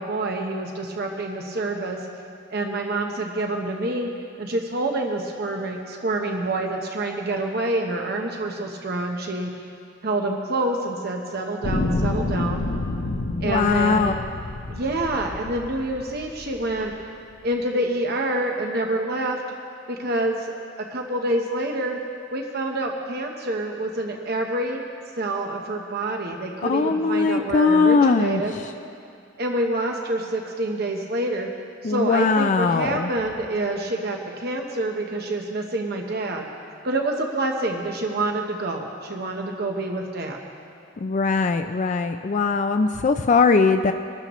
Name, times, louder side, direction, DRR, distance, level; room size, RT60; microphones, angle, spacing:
voice 1, 0.0-2.0 2.5-4.1 4.4-9.5 10.0-12.7 13.4-14.2 14.7-16.9 17.4-19.4 19.9-22.0 22.3-24.8 25.2-28.6 29.4-31.5 31.8-36.5 36.8-40.4, right 2 dB, 55° right, 2 dB, 1.0 m, -27 dB
sound 1, 11.6-16.9 17.6-17.7, left 2 dB, 70° left, 0.8 m, -28 dB
voice 2, 13.4-14.1 26.6-28.4 31.8-33.1 41.0-43.9, left 4 dB, 40° left, 7 dB, 0.4 m, -20 dB
23.0 x 12.5 x 3.1 m, 2.4 s
head